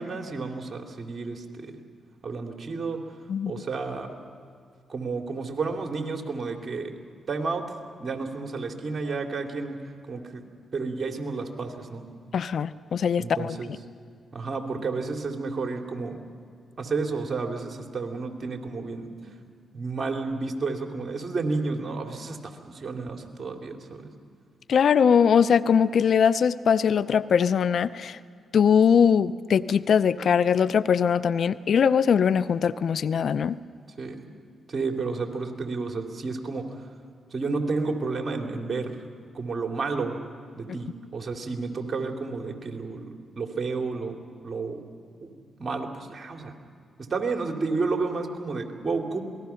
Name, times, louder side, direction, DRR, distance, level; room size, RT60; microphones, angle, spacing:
voice 1, 0.0-1.8 2.2-3.0 3.4-4.2 4.9-6.9 7.3-7.6 8.0-9.8 10.1-10.4 10.7-12.1 13.2-13.7 14.3-16.2 16.8-19.3 19.7-24.1 34.0-34.3 34.7-36.8 37.3-39.0 39.3-40.2 40.6-44.2 44.4-44.8 45.2-45.3 45.6-46.5 47.1-49.2, right 4 dB, 45° right, 3 dB, 2.8 m, -31 dB
voice 2, 12.3-13.8 24.7-28.2 28.5-33.6, left 7 dB, 65° left, 16 dB, 0.5 m, -21 dB
27.0 x 19.5 x 5.8 m, 2.3 s
supercardioid pair, 55°, 0 cm